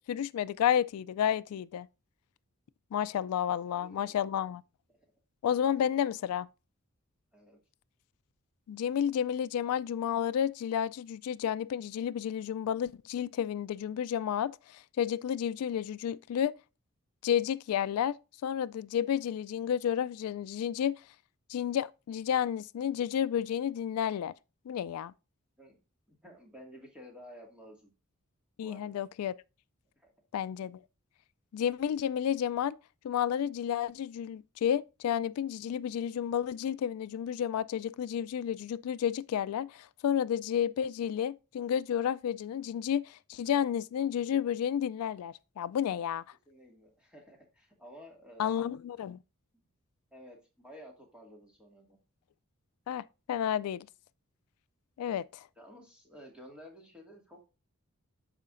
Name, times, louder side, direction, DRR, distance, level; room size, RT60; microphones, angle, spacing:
voice 1, 0.1-1.9 2.9-4.6 5.4-6.5 8.7-16.5 17.2-18.2 18.4-20.9 21.5-24.3 24.7-25.1 28.6-29.3 30.3-30.8 31.5-32.8 33.0-46.2 48.4-49.2 52.9-53.9 55.0-55.2, left 9 dB, 80° left, 0.3 m, -31 dB
voice 2, 3.4-4.2 4.9-5.0 7.3-7.6 25.6-25.8 26.1-27.9 28.6-29.0 30.0-30.1 46.5-48.7 49.5-49.7 50.1-52.0 55.6-57.5, equal, 5° right, 2.0 m, -53 dB
13.0 x 4.9 x 2.5 m
head